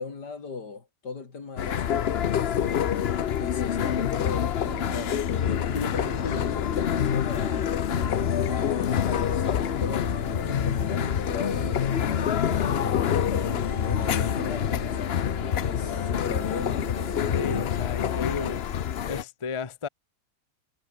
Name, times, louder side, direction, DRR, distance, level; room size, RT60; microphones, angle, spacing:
voice 1, 0.0-2.9 3.4-7.7 8.5-15.0 15.6-16.8, left 4 dB, 70° left, 3.6 m, -37 dB
sound 1, 1.6-19.2, left 9 dB, 55° left, 0.7 m, -26 dB
sound 2, 4.6-17.7, right 4 dB, 45° right, 2.6 m, -41 dB
voice 2, 17.3-18.6 19.1-19.9, left 5 dB, 25° left, 0.8 m, -33 dB
omnidirectional pair, 1.8 m